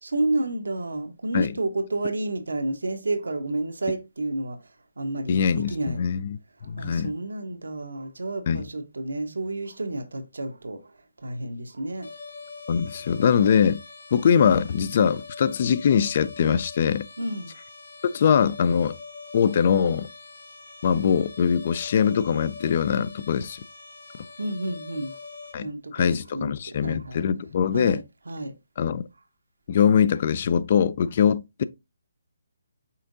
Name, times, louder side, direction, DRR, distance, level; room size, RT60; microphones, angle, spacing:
voice 1, 0.0-4.6 5.0-6.1 6.8-10.8 11.2-12.1 17.2-17.5 24.4-25.1 25.6-27.2 27.7-28.5, right 2 dB, 85° right, 1.0 m, -30 dB
voice 2, 5.3-6.4 6.7-7.1 8.5-8.6 12.7-13.8 14.1-17.1 18.0-19.0 19.3-20.1 20.8-23.6 25.5-28.0 28.8-29.0 29.7-31.6, left 7 dB, 45° left, 0.4 m, -22 dB
sound 1, 12.0-25.5, left 4 dB, 75° left, 1.4 m, -43 dB
5.6 x 3.5 x 2.6 m
hypercardioid pair, 155°, 0 cm